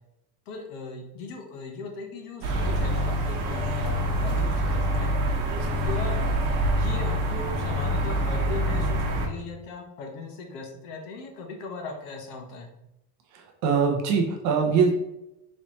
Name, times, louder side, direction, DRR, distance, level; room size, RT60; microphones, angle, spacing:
voice 1, 0.5-5.1 5.8-6.2 6.7-12.7, left 3 dB, 60° left, 3 dB, 1.0 m, -38 dB
sound 1, 2.4-9.3, equal, 75° right, 1.1 m, -26 dB
voice 2, 13.3-15.0, right 5 dB, 40° right, 2 dB, 0.6 m, -23 dB
4.2 x 3.2 x 3.0 m, 0.87 s
cardioid pair, 175°, 44 cm